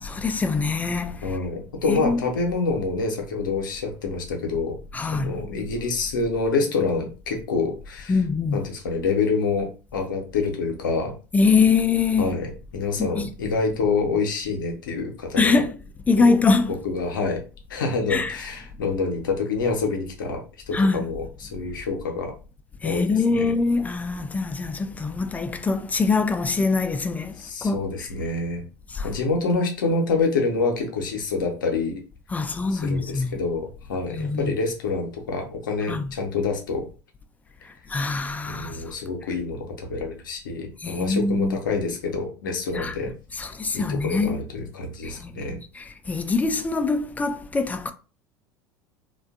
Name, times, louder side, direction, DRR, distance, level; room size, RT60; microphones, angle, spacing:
voice 1, 0.0-1.4 1.9-2.2 4.9-5.3 8.1-8.6 11.3-12.3 13.0-13.3 15.4-15.7 16.1-16.7 18.1-18.4 20.7-21.1 22.8-27.8 28.9-29.1 32.3-33.4 34.1-34.5 35.9-36.1 37.9-38.8 40.8-41.6 42.7-42.9 43.3-44.4 45.0-47.9, left 4 dB, 15° left, 0.3 m, -23 dB
voice 2, 1.2-8.2 8.5-11.1 12.2-15.6 16.2-16.4 16.8-17.4 17.7-22.3 22.8-23.5 27.4-28.6 29.0-32.0 32.7-36.9 38.4-43.1 43.7-45.6, left 4 dB, 75° left, 0.7 m, -27 dB
2.5 x 2.2 x 2.3 m
figure-of-eight pair, 70°, 11 cm